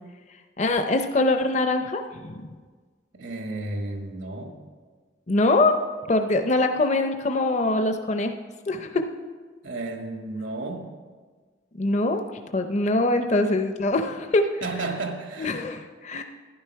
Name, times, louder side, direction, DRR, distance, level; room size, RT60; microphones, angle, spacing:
voice 1, 0.6-2.5 5.3-5.8 6.1-8.4 8.7-9.1 11.7-12.2 12.5-14.6 15.4-16.2, left 2 dB, 35° left, 7 dB, 0.5 m, -23 dB
voice 2, 3.1-4.6 9.6-10.9 14.6-15.5, right 2 dB, 80° right, 4 dB, 1.5 m, -32 dB
11.5 x 10.5 x 4.6 m, 1.5 s
head